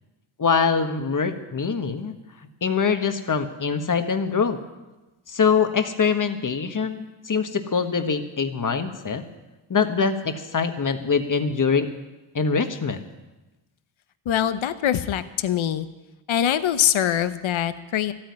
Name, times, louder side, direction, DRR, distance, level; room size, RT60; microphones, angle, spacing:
voice 1, 0.4-2.1 2.6-4.6 5.3-9.2 9.7-11.9 12.3-13.0, left 5 dB, 40° left, 7 dB, 1.5 m, -23 dB
voice 2, 14.3-15.9 16.3-18.1, left 10 dB, 70° left, 12 dB, 0.9 m, -23 dB
13.5 x 9.0 x 9.6 m, 1.1 s
cardioid pair, 70°, 49 cm